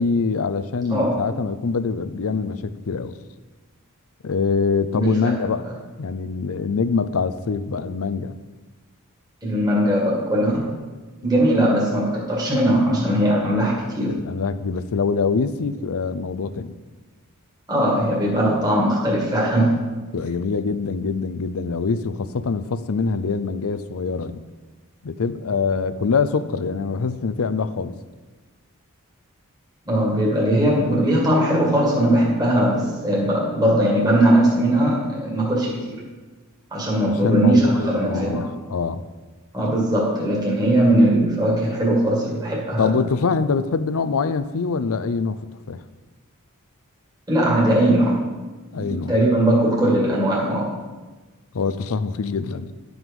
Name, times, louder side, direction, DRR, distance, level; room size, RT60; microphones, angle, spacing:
voice 1, 0.0-3.2 4.2-5.6 6.0-8.4 14.1-16.7 20.1-24.4 25.0-27.9 37.0-39.0 42.8-45.4 45.7-45.8 48.7-49.2 51.5-52.7, left 4 dB, 70° left, 12 dB, 0.5 m, -24 dB
voice 2, 4.9-5.3 5.6-5.7 9.4-10.7 11.2-14.2 17.7-19.8 29.9-36.0 36.7-38.5 39.5-43.0 47.3-48.2 48.7-50.7, right 1 dB, 20° right, -4 dB, 2.1 m, -19 dB
11.0 x 6.1 x 5.3 m, 1.3 s
head